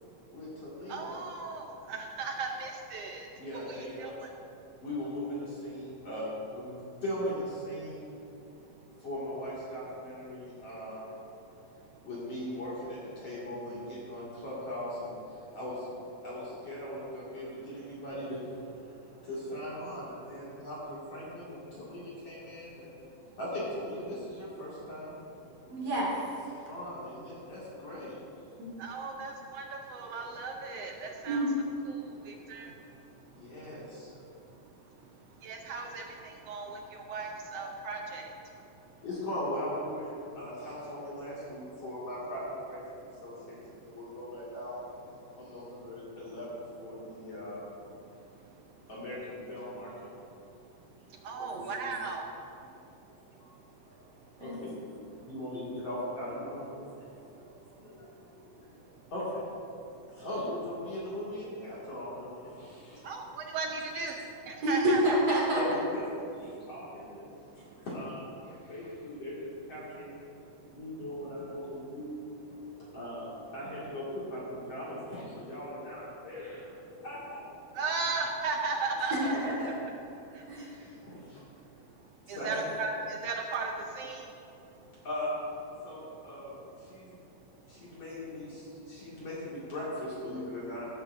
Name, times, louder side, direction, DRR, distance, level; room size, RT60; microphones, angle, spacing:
voice 1, 0.3-1.2 3.4-4.1 4.8-8.1 9.0-11.1 12.0-15.9 16.2-18.4 19.2-22.9 23.4-25.2 26.7-28.1 33.3-34.1 39.0-42.8 43.2-44.7 45.3-47.6 48.9-50.1 51.4-51.9 52.7-52.9 53.4-53.5 53.8-53.9 54.4-57.5 57.8-58.1 58.8-59.5 60.1-63.0 64.9-65.0 65.5-70.2 70.7-72.2 72.9-77.4 80.8-81.4 82.3-82.6 85.0-85.3 85.8-86.5 86.8-87.1 87.7-90.9, left 1 dB, 50° left, -9 dB, 3.2 m, -39 dB
voice 2, 0.9-3.3 3.5-4.1 28.8-31.4 31.9-32.0 32.3-32.7 35.4-36.8 37.1-38.3 51.2-52.2 63.0-64.1 64.5-65.2 77.8-79.3 82.3-84.2, right 4 dB, 80° right, 2 dB, 1.4 m, -36 dB
voice 3, 25.7-26.1 28.6-28.7 31.3-31.5 54.4-54.6 64.6-65.6 79.1-79.8 80.5-80.7, right 1 dB, 55° right, -5 dB, 3.5 m, -28 dB
16.0 x 13.0 x 2.7 m, 2.7 s
omnidirectional pair, 3.8 m